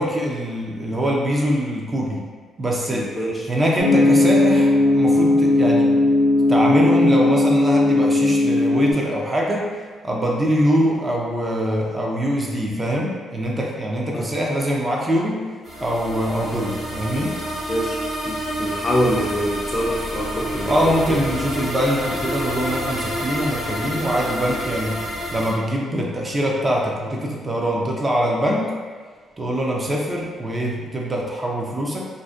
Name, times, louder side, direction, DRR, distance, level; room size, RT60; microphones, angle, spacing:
voice 1, 0.0-2.2 2.6-3.1 3.5-5.9 6.5-9.7 10.0-15.4 15.8-17.3 20.6-25.0 25.3-28.7 29.4-32.1, equal, 25° right, -2 dB, 0.4 m, -23 dB
voice 2, 2.9-3.5 14.1-14.3 17.7-21.2, equal, 30° left, -2 dB, 0.4 m, -25 dB
sound 1, 3.8-8.9, left 2 dB, 80° left, 0.6 m, -17 dB
sound 2, 15.6-25.5, equal, 50° right, 0.9 m, -29 dB
2.5 x 2.1 x 2.4 m, 1.5 s
cardioid pair, 90°, 0 cm